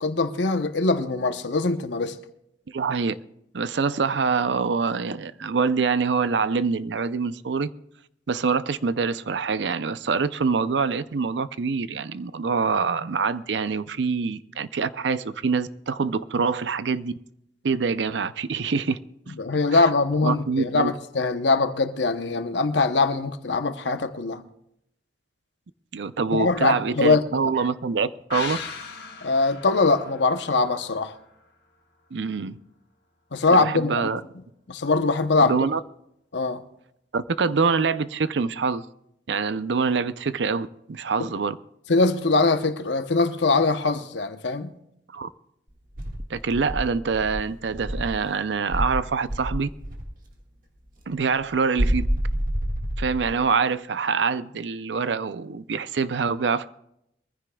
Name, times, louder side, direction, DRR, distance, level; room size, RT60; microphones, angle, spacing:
voice 1, 0.0-2.2 19.4-24.4 26.3-27.2 29.2-31.2 33.3-34.1 34.7-35.7 36.3-36.6 41.2-41.3 41.9-44.7, left 3 dB, 85° left, 0.9 m, -22 dB
voice 2, 2.7-3.2 3.5-7.7 8.3-17.1 17.6-19.0 19.3-19.4 19.7-19.8 20.2-20.9 25.9-28.6 32.1-32.6 33.5-34.2 35.4-35.8 37.1-38.9 39.3-41.6 45.1-45.3 46.3-49.7 51.1-52.1 53.0-56.7, right 5 dB, 85° right, 0.5 m, -25 dB
sound 1, 28.3-31.8 32.1-32.2, left 5 dB, 70° left, 2.1 m, -38 dB
Insect, 46.0-48.2 48.7-50.1 51.8-53.4, equal, 50° right, 1.8 m, -27 dB
23.0 x 15.0 x 2.3 m
head